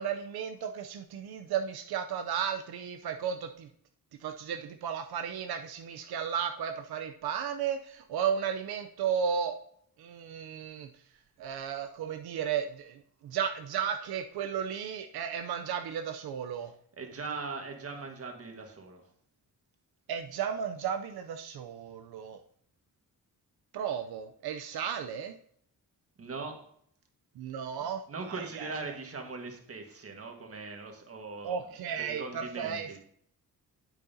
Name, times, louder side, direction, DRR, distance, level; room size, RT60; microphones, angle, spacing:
voice 1, 0.0-3.7 4.2-9.5 10.0-10.9 11.4-16.7 20.1-22.4 23.7-25.3 27.4-28.7 31.4-33.0, right 7 dB, 85° right, 6 dB, 0.6 m, -34 dB
voice 2, 17.0-19.0 26.2-26.5 28.1-31.6 32.0-33.0, right 4 dB, 40° right, 3 dB, 1.6 m, -40 dB
8.8 x 8.3 x 2.7 m, 0.64 s
wide cardioid pair, 125°, 36 cm